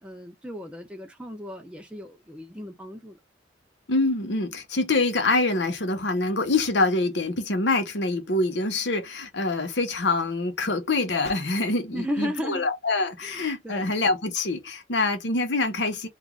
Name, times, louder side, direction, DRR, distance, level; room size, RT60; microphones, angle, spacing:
voice 1, 0.0-3.2 11.9-12.6 13.2-13.9, equal, 5° right, 0.6 m, -35 dB
voice 2, 3.9-16.1, left 2 dB, 70° left, 0.9 m, -25 dB
3.0 x 2.5 x 3.6 m
head